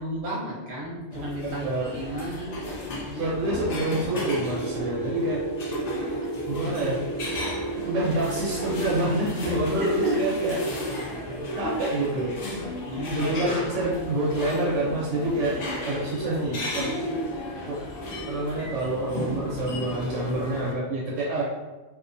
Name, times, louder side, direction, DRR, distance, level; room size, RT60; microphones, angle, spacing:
voice 1, 0.0-2.5 3.0-3.3 6.0-6.1 9.6-10.2 10.5-10.6 11.6-11.7 12.4-13.3, equal, 45° right, -6 dB, 0.9 m, -33 dB
sound 1, 1.1-20.7, left 1 dB, 80° left, 0.3 m, -34 dB
voice 2, 1.4-1.9 3.1-5.4 6.5-7.0 7.8-10.6 11.6-12.4 13.1-15.6 15.9-16.9 17.7-17.8 18.3-21.4, right 1 dB, 75° right, -5 dB, 0.9 m, -27 dB
sound 2, 4.1-9.0, right 3 dB, 25° left, 0.6 m, -33 dB
Explosion, 13.1-18.3, equal, 55° left, 0.9 m, -47 dB
2.4 x 2.1 x 2.5 m, 1.2 s
omnidirectional pair, 1.3 m